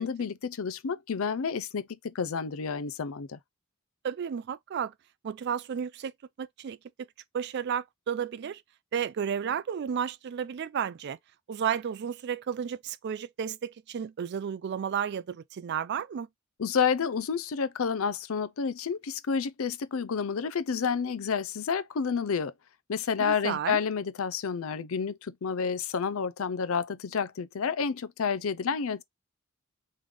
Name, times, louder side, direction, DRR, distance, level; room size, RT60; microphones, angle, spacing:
voice 1, 0.0-3.4 16.6-22.5 22.9-29.0, left 6 dB, 70° left, 0.5 m, -30 dB
voice 2, 4.0-4.9 5.2-6.1 6.4-7.1 7.3-8.6 8.9-11.2 11.5-16.3 23.2-23.8, right 8 dB, 50° right, 0.3 m, -32 dB
3.4 x 3.2 x 3.6 m
head